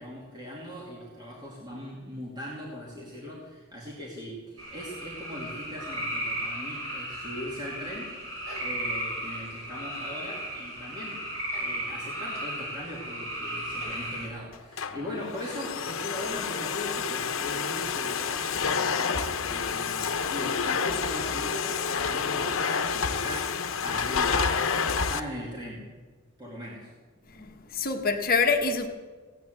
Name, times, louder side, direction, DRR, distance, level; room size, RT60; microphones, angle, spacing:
voice 1, 0.0-8.2 8.6-11.3 11.5-25.9 26.4-26.9, left 1 dB, 20° right, 2.7 m, -40 dB
sound 1, 4.6-14.3, right 1 dB, 85° right, 5.8 m, -35 dB
Domestic sounds home sounds, 14.5-25.2, left 6 dB, 70° left, 0.9 m, -29 dB
voice 2, 27.3-28.9, left 4 dB, 45° left, 1.2 m, -26 dB
16.5 x 9.2 x 7.9 m
head